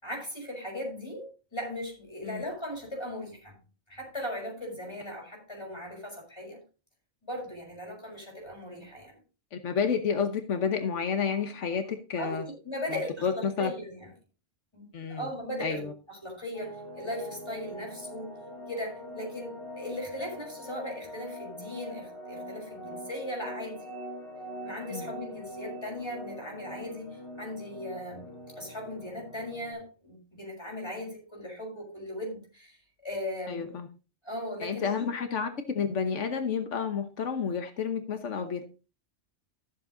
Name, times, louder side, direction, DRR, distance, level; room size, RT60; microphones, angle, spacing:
voice 1, 0.0-3.6 3.9-6.6 7.2-9.1 12.2-14.1 14.7-18.3 18.7-23.9 24.6-28.3 28.6-32.8 33.0-33.7 34.2-35.1, left 1 dB, 20° left, 5.9 m, -38 dB
voice 2, 9.5-12.4 12.9-13.7 14.9-15.3 15.6-15.9 24.9-25.1 33.5-33.9 34.6-38.6, left 6 dB, 85° left, 1.4 m, -30 dB
sound 1, 16.5-29.7, equal, 50° left, 4.5 m, -43 dB
13.5 x 7.5 x 3.8 m
omnidirectional pair, 1.2 m